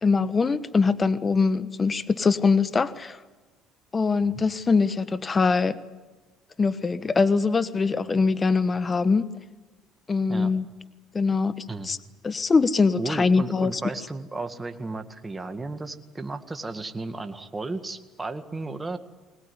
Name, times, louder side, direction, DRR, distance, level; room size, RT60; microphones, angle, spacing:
voice 1, 0.0-3.2 3.9-5.8 6.6-9.3 10.1-10.6 11.1-12.0 12.2-13.8, left 4 dB, 30° left, 13 dB, 1.2 m, -23 dB
voice 2, 13.0-19.0, right 3 dB, 20° right, 7 dB, 2.0 m, -34 dB
22.5 x 19.5 x 9.8 m, 1.2 s
supercardioid pair, 75°, 0 cm